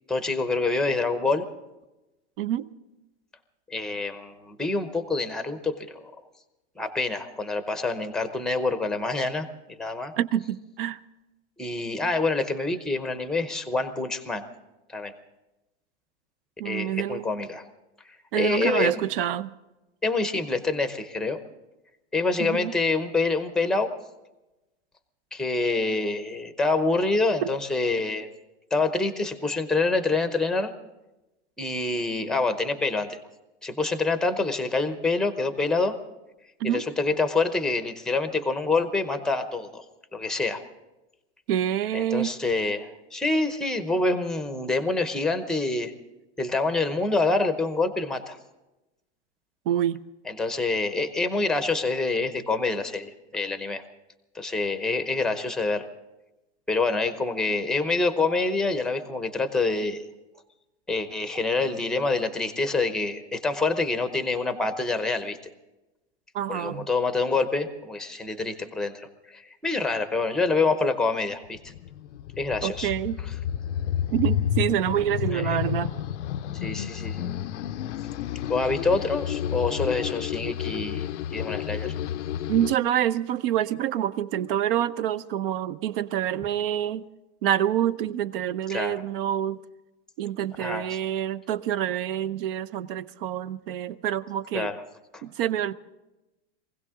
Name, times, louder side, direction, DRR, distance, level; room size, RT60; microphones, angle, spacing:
voice 1, 0.1-1.4 3.7-6.0 6.8-10.1 11.6-14.4 14.9-15.1 16.6-17.6 18.4-19.0 20.0-21.4 22.1-23.9 25.3-28.3 28.7-30.7 31.6-33.2 33.6-36.0 36.6-39.8 40.1-40.6 41.9-45.9 46.4-48.4 50.3-53.8 54.3-55.8 56.7-60.0 60.9-65.4 66.5-71.7 72.4-72.9 75.3-75.6 76.5-77.3 78.5-81.9 88.7-89.0 90.6-91.0 94.5-94.8 95.1-95.2, left 3 dB, ahead, 0.8 m, -26 dB
voice 2, 2.4-2.7 10.2-11.0 16.6-17.3 18.3-19.5 22.4-22.7 36.6-36.8 41.5-42.3 49.7-50.0 66.3-66.9 72.6-73.2 74.1-75.9 82.5-87.0 87.4-89.6 90.2-94.7 95.2-95.7, right 11 dB, 55° right, 0.7 m, -27 dB
sound 1, 71.4-82.7, left 10 dB, 90° left, 0.6 m, -31 dB
23.5 x 16.5 x 3.7 m
supercardioid pair, 155°, 35 cm